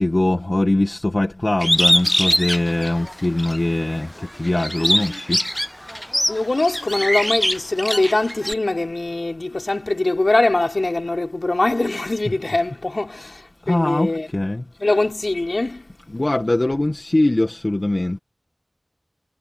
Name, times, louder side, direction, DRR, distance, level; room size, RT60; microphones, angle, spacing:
voice 1, 0.0-4.1 4.4-5.4 13.7-14.6 16.1-18.2, left 1 dB, 55° left, 1.8 m, -21 dB
Bird, 1.6-3.6 4.0-8.5, equal, 10° left, 0.3 m, -22 dB
voice 2, 6.3-14.3 14.8-15.9, left 2 dB, 80° left, 4.4 m, -22 dB
wide cardioid pair, 40°, 0 cm